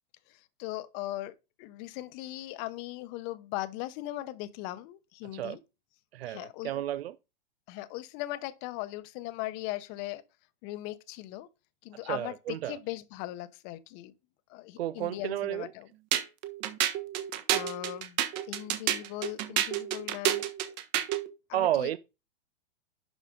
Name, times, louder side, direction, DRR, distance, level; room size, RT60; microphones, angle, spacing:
voice 1, 0.3-5.6 6.3-6.8 7.7-10.2 10.6-11.5 11.8-14.1 14.5-15.9 17.5-18.2 18.5-20.5 21.5-22.0, left 16 dB, 35° left, 0.8 m, -39 dB
voice 2, 6.1-7.1 12.0-12.8 14.8-15.7 21.5-22.0, right 12 dB, 80° right, 0.6 m, -31 dB
sound 1, 16.1-21.3, right 12 dB, 45° right, 1.3 m, -30 dB
11.0 x 5.0 x 3.8 m
hypercardioid pair, 140°, 30 cm